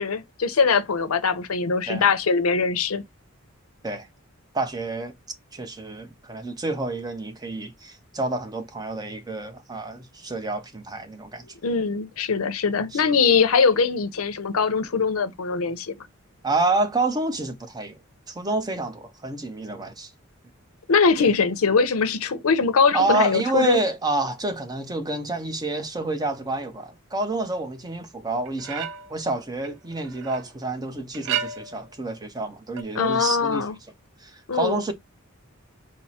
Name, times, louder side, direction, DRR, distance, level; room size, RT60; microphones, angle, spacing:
voice 1, 0.0-3.0 11.6-16.0 20.9-23.8 32.9-33.8 34.5-34.8, left 5 dB, 85° left, 0.7 m, -22 dB
voice 2, 4.5-5.1 5.5-11.5 12.9-13.0 16.4-18.0 18.3-20.1 21.2-21.3 22.9-33.7 34.2-34.9, right 2 dB, 20° right, 0.6 m, -28 dB
sound 1, 28.5-29.2 29.6-30.5 31.1-31.9 32.8-32.9, right 8 dB, 60° right, 0.4 m, -32 dB
4.4 x 2.0 x 4.2 m
head